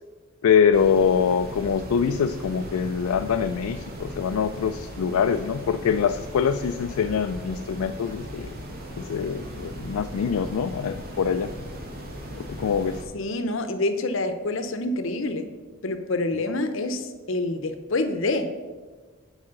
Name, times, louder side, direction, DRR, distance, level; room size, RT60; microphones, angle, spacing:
voice 1, 0.4-8.5 9.0-11.5 12.5-13.0, left 7 dB, 85° left, 8 dB, 0.3 m, -24 dB
sound 1, 0.7-13.0, right 1 dB, 45° right, 1.4 m, -38 dB
voice 2, 13.1-15.4 15.8-18.6, left 2 dB, 60° left, 9 dB, 0.7 m, -27 dB
8.6 x 4.8 x 6.4 m, 1.4 s
head